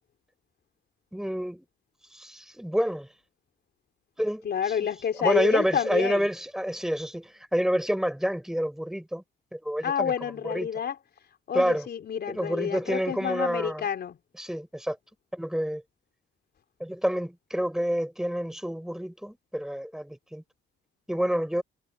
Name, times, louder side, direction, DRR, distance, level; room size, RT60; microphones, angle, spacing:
voice 1, 1.1-1.7 2.1-3.1 4.2-4.8 5.2-9.2 9.5-10.7 11.5-11.9 12.3-13.9 14.4-15.0 15.3-15.8 16.8-20.4 21.1-21.6, equal, ahead, 5.5 m, -28 dB
voice 2, 4.4-6.3 9.8-10.9 11.5-14.2, left 8 dB, 55° left, 3.7 m, -29 dB
cardioid pair, 90°, 20 cm